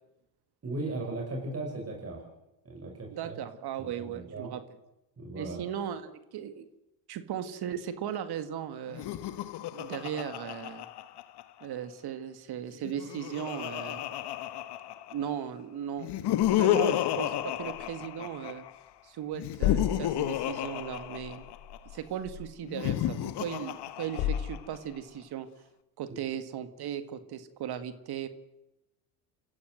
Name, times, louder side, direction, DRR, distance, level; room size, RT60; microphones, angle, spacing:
voice 1, 0.6-2.2 2.6-3.4 3.8-4.5 5.2-5.6 26.1-26.2, right 2 dB, 30° right, 0 dB, 6.3 m, -37 dB
voice 2, 3.1-4.6 5.4-6.7 7.1-9.1 9.7-10.9 11.6-14.1 15.1-18.7 19.0-21.4 21.9-25.5 26.0-28.3, right 9 dB, 55° right, 11 dB, 2.0 m, -37 dB
Laughter, 8.9-11.6 12.7-15.3 16.0-18.7 19.3-21.8 22.6-24.8, left 13 dB, 60° left, 1.5 m, -32 dB
sound 1, 16.4-19.0 19.2-23.5 23.9-25.1, left 10 dB, 85° left, 3.2 m, -37 dB
27.0 x 15.0 x 7.9 m, 0.95 s
supercardioid pair, 85°, 46 cm